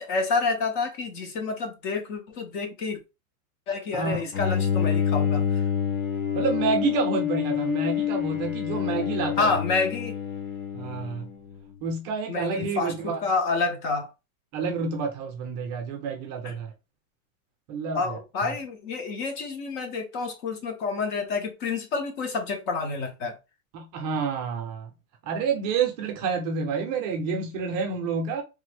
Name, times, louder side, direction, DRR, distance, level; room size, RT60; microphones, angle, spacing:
voice 1, 0.0-3.0 3.7-5.6 9.4-10.2 12.3-14.1 16.4-16.5 17.9-23.3, left 4 dB, 35° left, 0.6 m, -28 dB
Bowed string instrument, 4.3-11.6, left 8 dB, 85° left, 1.0 m, -27 dB
voice 2, 6.3-9.5 10.7-11.3 11.8-13.2 14.5-16.7 17.7-18.5 23.7-24.9 25.2-28.4, right 5 dB, 30° right, 0.5 m, -29 dB
3.3 x 2.1 x 3.2 m
supercardioid pair, 165°, 41 cm